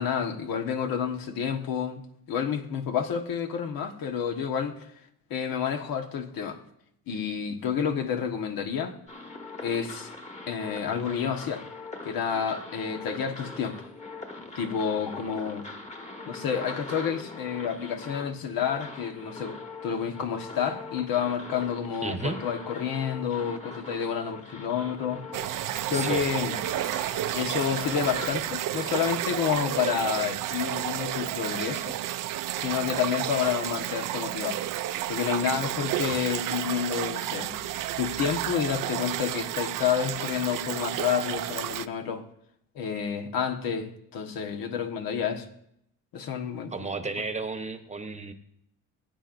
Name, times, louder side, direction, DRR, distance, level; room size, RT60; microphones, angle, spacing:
voice 1, 0.0-2.0 2.3-4.8 5.3-6.6 7.1-9.0 9.6-10.1 10.5-11.6 12.0-13.8 14.5-15.7 16.3-25.2 25.9-26.6 27.3-32.0 32.6-34.6 35.1-37.6 38.0-42.3 42.7-45.5 46.1-46.9, left 7 dB, 80° left, 1.5 m, -29 dB
sound 1, 9.1-28.3, left 3 dB, 20° left, 1.4 m, -42 dB
voice 2, 22.0-22.4 25.9-26.2 46.7-48.3, right 3 dB, 20° right, 0.9 m, -32 dB
sound 2, 25.3-41.9, right 13 dB, 65° right, 0.5 m, -31 dB
20.5 x 9.1 x 2.6 m
cardioid pair, 125°, 35 cm